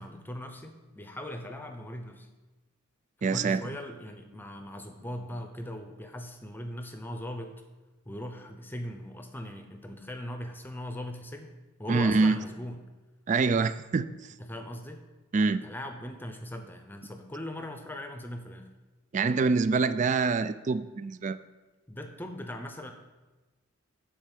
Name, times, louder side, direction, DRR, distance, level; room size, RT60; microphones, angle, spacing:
voice 1, 0.0-2.3 3.2-7.6 8.1-12.9 14.4-15.1 15.6-18.7 21.9-22.9, left 1 dB, 10° left, 5 dB, 0.7 m, -40 dB
voice 2, 3.2-3.6 11.9-12.4 13.3-14.3 15.3-15.6 19.1-21.4, right 4 dB, 35° right, 13 dB, 0.3 m, -25 dB
9.3 x 4.2 x 7.3 m, 1.2 s
head